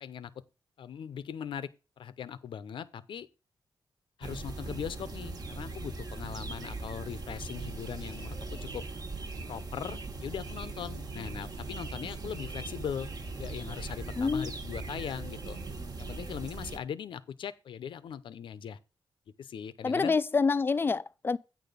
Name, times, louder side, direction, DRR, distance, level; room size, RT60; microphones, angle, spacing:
voice 1, 0.0-0.3 0.8-1.7 2.0-3.3 4.2-8.8 9.5-13.1 13.4-15.6 16.0-18.8 19.4-20.2, left 8 dB, 80° left, 0.6 m, -40 dB
sound 1, 4.2-16.8, right 3 dB, 50° right, 1.3 m, -40 dB
voice 2, 14.2-14.5 19.8-21.4, left 4 dB, 25° left, 0.3 m, -27 dB
9.1 x 4.0 x 6.7 m
wide cardioid pair, 105°, 8 cm